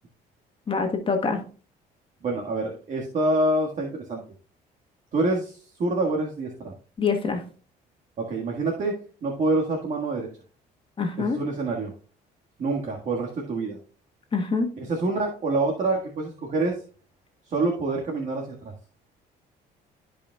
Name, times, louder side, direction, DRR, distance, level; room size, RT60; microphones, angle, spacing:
voice 1, 0.7-1.4 7.0-7.4 11.0-11.4 14.3-14.7, left 4 dB, 30° left, 4 dB, 1.5 m, -25 dB
voice 2, 2.2-4.2 5.1-6.7 8.2-9.0 9.2-10.3 11.2-11.9 12.6-13.8 14.8-16.8 17.5-18.5, right 2 dB, 45° right, 0 dB, 1.7 m, -26 dB
14.0 x 5.1 x 2.3 m, 0.40 s
cardioid pair, 110°, 17 cm